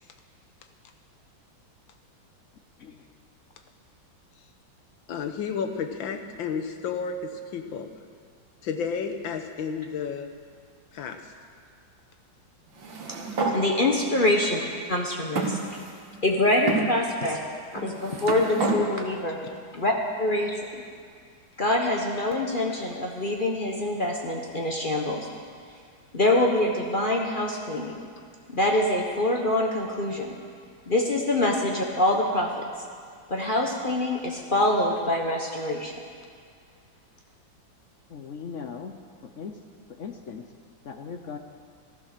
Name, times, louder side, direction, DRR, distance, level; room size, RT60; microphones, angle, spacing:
voice 1, 5.1-7.9 8.6-10.3 10.9-11.3 13.4-13.5 18.7-18.9, left 6 dB, 80° left, 7 dB, 1.8 m, -32 dB
sound 1, 12.8-13.6 14.4-14.5 15.4-16.2 16.7-16.9 17.8-18.8, right 3 dB, 80° right, 2.3 m, -29 dB
voice 2, 13.5-14.6 14.9-15.6 16.2-17.4 17.7-19.4 19.7-19.9 20.2-20.8 21.6-25.3 26.1-27.9 28.5-30.3 30.9-32.6 33.3-35.9, left 1 dB, 30° left, 0 dB, 1.1 m, -25 dB
voice 3, 38.1-38.9 39.4-39.6 39.9-40.4 40.8-41.4, left 6 dB, 60° left, 5 dB, 0.8 m, -38 dB
14.0 x 13.0 x 6.7 m, 2.1 s
omnidirectional pair, 2.1 m